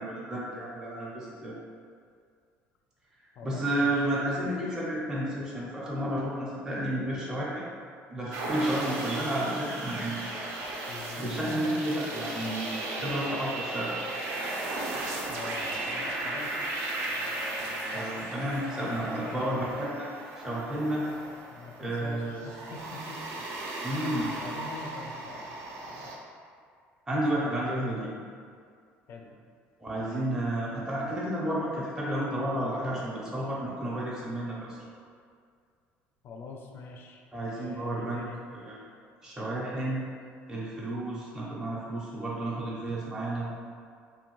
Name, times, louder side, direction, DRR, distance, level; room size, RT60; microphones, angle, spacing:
voice 1, 0.0-1.5 3.4-7.6 8.1-10.3 11.2-14.0 17.9-20.1 20.4-21.0 21.8-22.4 23.8-24.3 27.1-28.1 29.8-34.8 37.3-38.2 38.5-38.8 39.2-40.0 40.5-43.5, right 1 dB, 10° right, -7 dB, 0.5 m, -31 dB
voice 2, 3.4-4.1 10.9-11.6 15.3-16.7 17.1-18.1 18.8-19.5 21.5-23.6 24.4-25.6 25.8-26.2 29.1-29.3 29.9-30.3 36.2-37.2 37.6-38.4, left 3 dB, 50° left, 1 dB, 0.4 m, -45 dB
sound 1, 8.3-26.2, right 2 dB, 70° right, 0.4 m, -36 dB
2.7 x 2.2 x 3.0 m, 2.2 s
cardioid pair, 115°, 5 cm